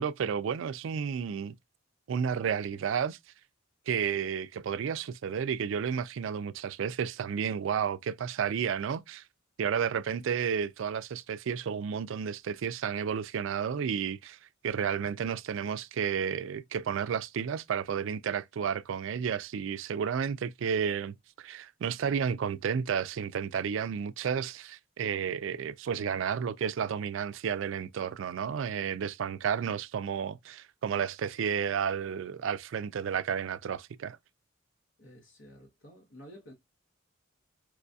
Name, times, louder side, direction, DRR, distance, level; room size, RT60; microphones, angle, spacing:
voice 1, 0.0-1.6 2.1-3.2 3.9-9.2 9.6-14.4 14.6-34.2, right 7 dB, 65° right, 0.3 m, -32 dB
voice 2, 35.0-36.5, equal, 75° left, 1.0 m, -51 dB
4.7 x 2.3 x 2.6 m
head